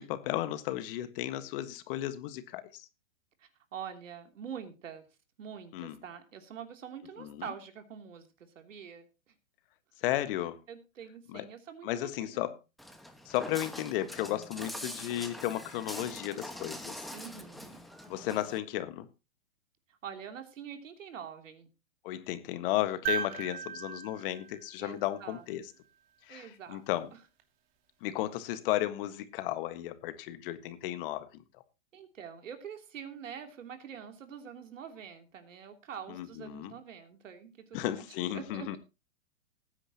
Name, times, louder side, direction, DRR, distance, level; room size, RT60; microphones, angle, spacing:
voice 1, 0.0-2.8 5.7-6.0 7.2-7.4 10.0-10.6 11.3-11.4 11.8-12.5 13.2-17.0 18.1-19.1 22.0-25.6 26.3-27.1 28.0-31.4 36.1-36.7 37.7-38.8, left 14 dB, 45° left, 1.5 m, -34 dB
voice 2, 3.4-5.0 5.4-9.3 10.7-12.5 14.6-14.9 17.1-17.8 20.0-21.7 24.8-25.4 26.3-26.8 27.1-27.2 31.9-38.8, right 8 dB, 75° right, 3.1 m, -45 dB
Walk footsteps, 12.8-18.6, equal, ahead, 1.3 m, -44 dB
sound 1, 23.1-25.4 27.4-27.5, right 8 dB, 45° right, 2.4 m, -37 dB
19.0 x 9.7 x 2.9 m
hypercardioid pair, 130°, 38 cm